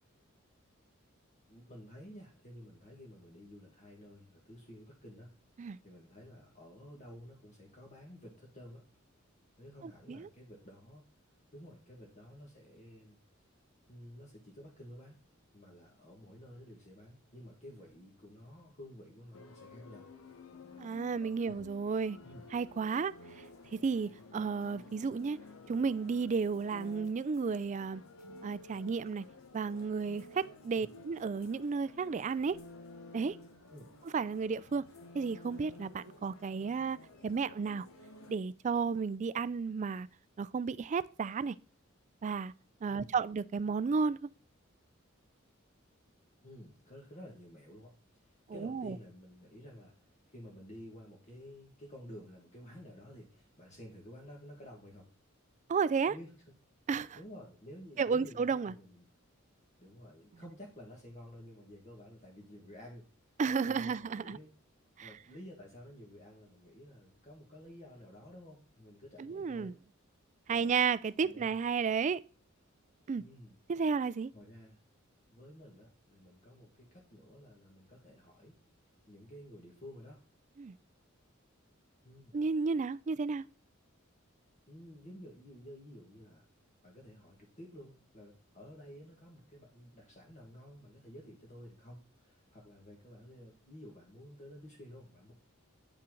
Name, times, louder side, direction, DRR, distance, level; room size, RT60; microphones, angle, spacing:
voice 1, 1.5-5.3 5.8-8.8 9.6-11.0 11.5-13.2 13.9-15.2 15.5-20.1 21.4-21.6 22.2-22.5 30.7-30.9 33.7-33.9 42.9-43.2 46.4-55.1 56.1-56.3 57.1-59.1 59.8-63.3 63.6-64.5 65.0-69.7 70.5-70.7 71.2-71.6 73.2-73.6 74.3-74.8 75.3-78.6 79.1-80.2 82.0-82.4 84.7-86.4 86.8-95.3, equal, 35° left, 1.6 m, -52 dB
voice 2, 9.8-10.3 20.8-22.2 22.5-23.4 23.7-25.4 25.7-28.0 28.4-29.2 29.5-32.6 33.1-33.4 34.1-34.8 35.1-37.0 37.2-37.9 38.3-40.1 40.4-41.6 42.2-42.5 42.8-44.3 48.5-49.0 55.7-56.1 56.9-57.2 58.0-58.7 63.4-64.4 65.0-65.1 69.2-69.7 70.5-72.2 73.1-73.2 73.7-74.3 80.6-80.7 82.3-83.5, right 5 dB, 35° right, 0.3 m, -33 dB
sound 1, 19.3-38.3, left 2 dB, 90° left, 1.2 m, -53 dB
8.9 x 5.7 x 3.8 m
head